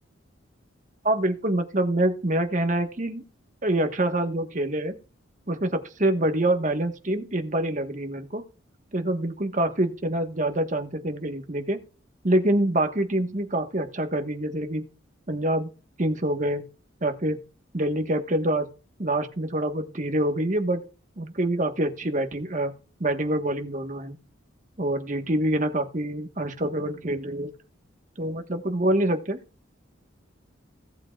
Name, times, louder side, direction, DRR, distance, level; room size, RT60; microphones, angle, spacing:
voice 1, 1.0-3.2 3.6-4.9 5.5-8.4 8.9-11.8 12.2-14.9 15.3-15.7 16.0-16.6 17.0-17.4 17.7-18.7 19.0-20.8 21.2-22.7 23.0-24.2 24.8-27.5 28.2-29.4, right 1 dB, 40° right, 6 dB, 1.4 m, -26 dB
17.0 x 7.9 x 2.4 m, 0.35 s
head